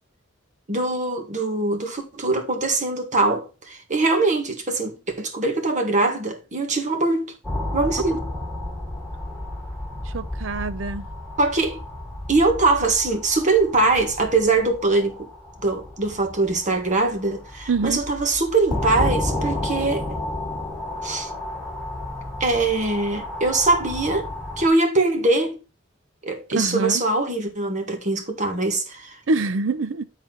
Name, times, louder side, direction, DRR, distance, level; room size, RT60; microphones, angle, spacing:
voice 1, 0.7-7.3 7.7-8.3 11.4-11.8 12.3-15.3 15.6-20.2 21.0-21.3 22.4-24.3 24.6-25.6 26.2-29.2, right 3 dB, 40° right, 1.7 m, -22 dB
sound 1, 7.4-24.7, left 1 dB, 5° left, 2.2 m, -32 dB
voice 2, 10.1-11.1 17.7-18.0 26.5-26.9 29.3-30.0, right 3 dB, 75° right, 0.6 m, -24 dB
9.7 x 4.3 x 4.4 m
head